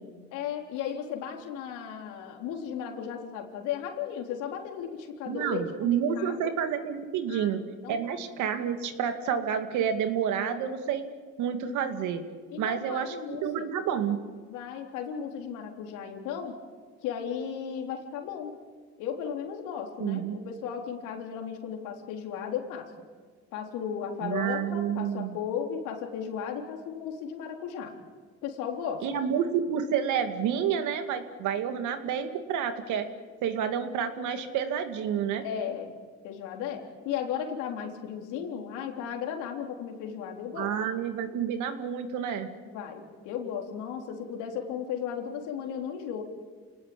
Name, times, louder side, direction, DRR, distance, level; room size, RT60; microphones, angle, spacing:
voice 1, 0.3-6.5 7.3-7.5 7.8-8.0 12.5-13.7 14.5-16.6 17.0-18.6 19.0-22.9 23.5-27.9 28.4-29.1 35.4-35.9 36.2-40.7 42.7-46.2, left 8 dB, 80° left, 2 dB, 3.8 m, -35 dB
voice 2, 5.3-7.6 7.9-11.0 11.4-12.2 12.6-14.2 20.0-20.4 24.2-25.4 29.0-33.1 33.4-35.4 40.6-42.5, right 8 dB, 75° right, 7 dB, 2.4 m, -29 dB
28.0 x 19.0 x 8.7 m, 1.5 s
supercardioid pair, 85°, 30 cm